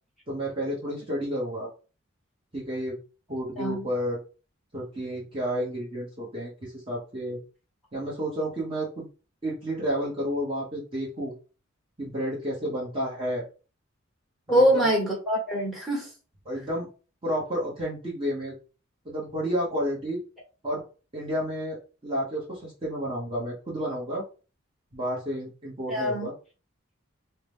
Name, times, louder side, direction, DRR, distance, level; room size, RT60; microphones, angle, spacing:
voice 1, 0.3-1.7 2.5-3.0 3.3-4.2 4.7-7.4 7.9-9.1 9.4-11.3 12.0-13.4 14.5-14.9 16.4-16.9 17.2-18.5 19.0-20.2 20.6-20.8 21.1-21.8 22.0-24.2 24.9-26.3, equal, 25° right, -5 dB, 1.0 m, -31 dB
voice 2, 3.6-3.9 14.5-16.1 25.9-26.3, equal, ahead, -3 dB, 1.4 m, -24 dB
3.8 x 2.1 x 3.5 m, 0.34 s
head